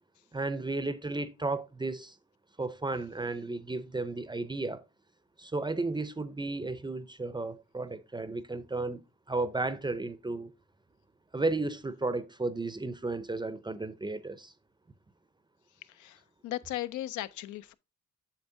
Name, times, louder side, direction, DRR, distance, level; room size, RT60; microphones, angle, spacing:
voice 1, 0.3-2.2 2.6-4.8 5.4-9.0 9.3-10.5 11.3-14.5, right 3 dB, 15° right, 0.5 m, -33 dB
voice 2, 15.8-17.7, left 14 dB, 75° left, 0.5 m, -37 dB
8.3 x 6.2 x 2.6 m
cardioid pair, 90°, 30 cm